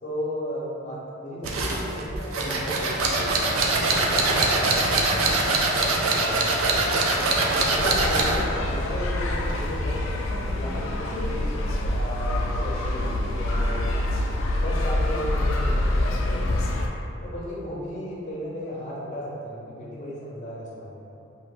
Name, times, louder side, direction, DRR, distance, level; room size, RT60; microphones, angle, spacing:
voice 1, 0.0-5.3 5.7-6.9 7.3-11.6 11.9-14.0 14.5-16.8 17.2-21.1, equal, 40° left, -6 dB, 0.6 m, -35 dB
sound 1, 1.4-8.4, right 2 dB, 85° right, 0.4 m, -23 dB
sound 2, 7.7-16.9, left 1 dB, 80° left, 0.3 m, -26 dB
2.6 x 2.5 x 3.1 m, 2.7 s
head